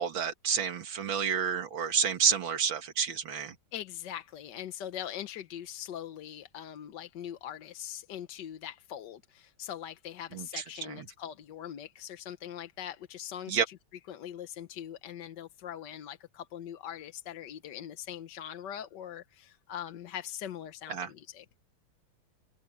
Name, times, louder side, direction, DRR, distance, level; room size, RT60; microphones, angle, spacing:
voice 1, 0.0-3.5 10.3-11.1 13.5-13.7 20.9-21.1, right 7 dB, 65° right, 2.4 m, -30 dB
voice 2, 3.7-13.8 14.1-21.4, left 10 dB, 60° left, 1.4 m, -42 dB
omnidirectional pair, 2.3 m